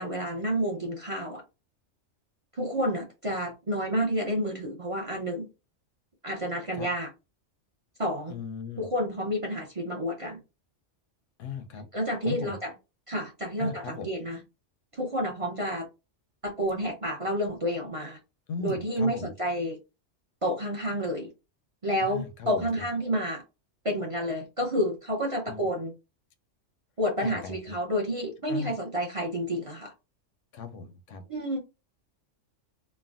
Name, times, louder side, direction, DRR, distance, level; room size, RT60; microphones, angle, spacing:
voice 1, 0.0-1.4 2.6-5.5 6.2-7.1 8.0-8.3 8.8-10.4 11.9-12.7 13.1-14.4 15.0-15.9 16.4-18.2 18.6-19.8 20.4-21.3 21.8-23.4 23.8-25.9 27.0-29.9 31.3-31.6, equal, 35° right, 0.5 m, -30 dB
voice 2, 8.3-8.9 11.4-11.9 12.3-12.6 13.6-14.1 18.5-19.3 22.0-22.7 25.5-25.7 27.2-27.8 28.5-28.7 30.5-31.2, left 5 dB, 80° left, 0.9 m, -37 dB
3.3 x 2.1 x 2.4 m
omnidirectional pair, 1.3 m